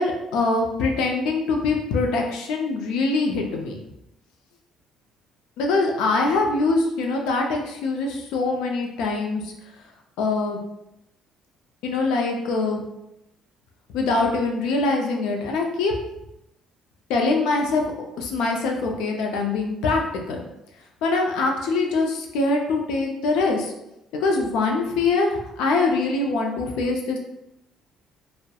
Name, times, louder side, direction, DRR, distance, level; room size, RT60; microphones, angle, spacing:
voice 1, 0.0-3.8 5.6-9.5 10.2-10.6 11.8-12.8 13.9-15.9 17.1-17.8 18.2-20.0 20.3-20.4 21.0-23.7 24.1-27.2, left 3 dB, 90° left, 1 dB, 0.4 m, -23 dB
2.7 x 2.0 x 2.2 m, 0.87 s
cardioid pair, 165°, 0 cm